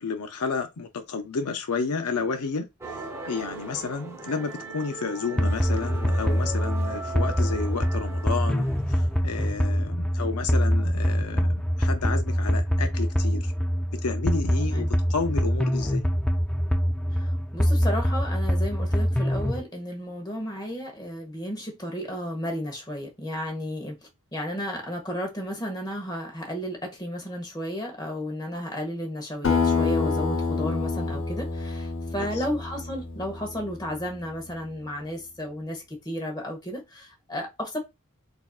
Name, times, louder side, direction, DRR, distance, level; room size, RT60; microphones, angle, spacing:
voice 1, 0.0-2.7 3.3-13.5 13.9-16.0 32.2-32.3, left 4 dB, 90° left, 0.6 m, -31 dB
sound 1, 2.8-9.4, right 3 dB, 15° right, 0.8 m, -39 dB
sound 2, 5.4-19.6, equal, 5° left, 0.4 m, -24 dB
voice 2, 17.2-23.9 24.3-37.8, equal, 20° left, 1.1 m, -33 dB
Acoustic guitar, 29.4-34.3, left 4 dB, 60° left, 0.8 m, -28 dB
4.2 x 2.7 x 2.4 m
head